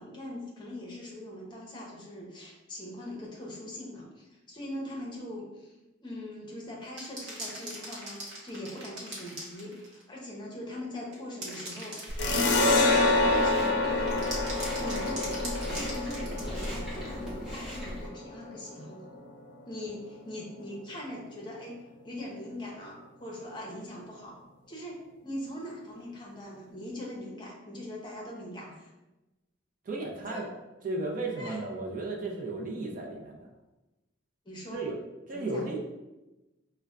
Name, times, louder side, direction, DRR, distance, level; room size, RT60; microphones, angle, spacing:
voice 1, 0.0-5.7 6.0-12.0 12.2-14.3 14.8-19.1 19.6-24.4 24.7-28.9 30.3-30.5 31.4-31.6 34.5-34.9 35.3-35.7, left 1 dB, 25° left, -3 dB, 0.7 m, -41 dB
sound 1, 6.9-10.0 11.1-13.0 14.1-17.0 17.7-17.8, right 1 dB, 60° right, 1.0 m, -41 dB
Chewing mastication, 12.1-18.1, equal, 5° right, 1.1 m, -38 dB
sound 2, 12.2-19.4, left 2 dB, 60° left, 0.5 m, -28 dB
voice 2, 29.8-30.5 30.8-33.5 34.7-34.9 35.3-35.8, right 2 dB, 45° right, 0 dB, 0.5 m, -34 dB
5.4 x 2.1 x 2.4 m, 1.0 s
head